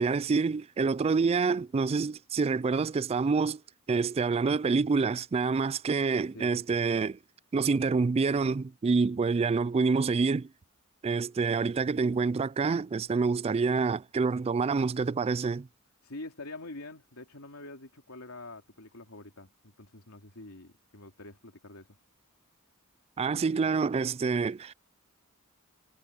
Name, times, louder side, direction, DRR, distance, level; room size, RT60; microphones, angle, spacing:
voice 1, 0.0-3.6 3.9-7.2 7.5-10.5 11.0-15.7 23.2-24.7, right 4 dB, 30° right, 0.3 m, -27 dB
voice 2, 6.3-6.8 16.0-21.9, left 2 dB, 75° left, 3.2 m, -46 dB
head